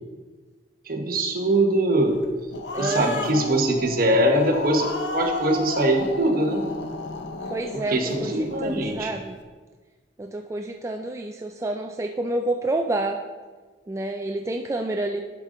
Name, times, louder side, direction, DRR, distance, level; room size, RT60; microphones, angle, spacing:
voice 1, 0.8-2.2 2.8-6.6 7.7-9.2, right 1 dB, 55° right, 3 dB, 1.0 m, -22 dB
Growling, 2.2-9.0, left 2 dB, 75° left, 0.7 m, -33 dB
voice 2, 2.7-3.6 7.5-9.4 10.2-13.2 13.9-15.2, right 2 dB, 15° right, 3 dB, 0.3 m, -29 dB
11.5 x 5.1 x 3.7 m, 1.4 s
head